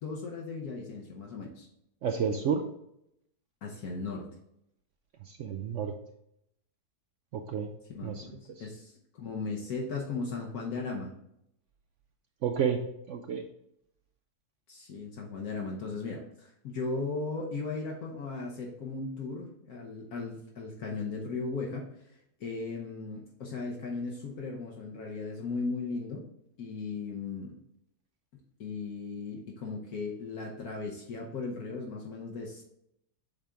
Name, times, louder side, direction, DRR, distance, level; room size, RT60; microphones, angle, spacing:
voice 1, 0.0-1.7 3.6-4.3 7.9-11.1 14.7-21.9 22.4-26.3 26.6-27.6 28.6-32.6, left 4 dB, 70° left, -1 dB, 1.3 m, -37 dB
voice 2, 2.0-2.6 5.2-5.9 7.3-7.7 8.0-8.3 8.6-8.7 12.4-13.4, right 7 dB, 70° right, 5 dB, 0.7 m, -31 dB
7.4 x 3.5 x 3.7 m, 0.79 s
omnidirectional pair, 1.7 m